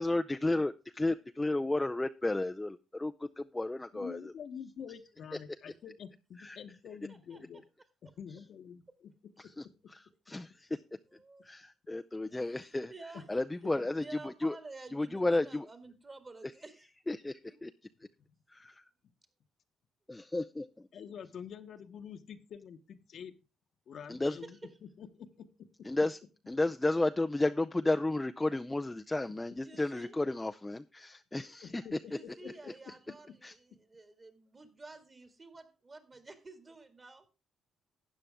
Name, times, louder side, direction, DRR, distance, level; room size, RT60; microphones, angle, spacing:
voice 1, 0.0-4.2 6.4-6.6 9.6-9.7 10.3-10.7 11.4-12.9 13.3-14.6 14.9-15.7 17.1-17.7 18.5-18.8 20.1-20.9 24.1-24.4 25.9-26.2 26.5-31.8 33.4-33.5, left 2 dB, 15° left, 0.4 m, -32 dB
voice 2, 3.9-7.6 8.0-9.1 13.6-13.7 20.9-23.4 23.9-25.9 29.3-29.4 31.3-32.9, left 7 dB, 60° left, 1.0 m, -47 dB
voice 3, 7.1-7.4 11.1-11.4 12.3-13.3 13.7-16.9 17.4-17.6 24.2-24.7 29.6-30.1 32.1-37.3, right 3 dB, 30° right, 2.1 m, -51 dB
12.5 x 8.9 x 3.5 m
cardioid pair, 90°, 0 cm